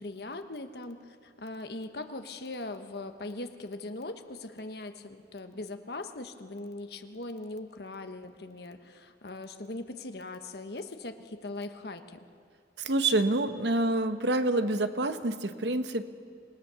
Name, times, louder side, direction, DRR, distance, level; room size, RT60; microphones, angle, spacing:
voice 1, 0.0-12.2, left 2 dB, 60° left, 7 dB, 1.1 m, -40 dB
voice 2, 12.8-16.1, right 2 dB, 70° right, 10 dB, 1.0 m, -27 dB
26.5 x 18.0 x 6.9 m, 2.2 s
head